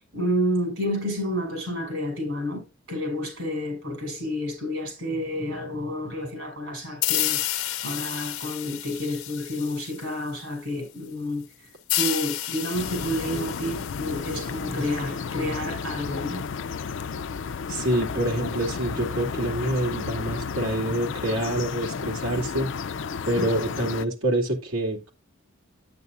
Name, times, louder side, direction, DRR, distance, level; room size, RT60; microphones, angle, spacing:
voice 1, 0.1-2.6 2.9-11.4 12.0-16.4 23.4-23.5, equal, 70° right, 5.8 m, -30 dB
sound 1, 7.0-10.4 11.9-15.4, left 14 dB, 90° left, 1.0 m, -31 dB
sound 2, 12.7-24.1, left 5 dB, 60° left, 0.4 m, -33 dB
voice 2, 17.7-22.7 23.3-25.1, right 1 dB, 90° right, 2.6 m, -26 dB
9.5 x 9.1 x 2.5 m
head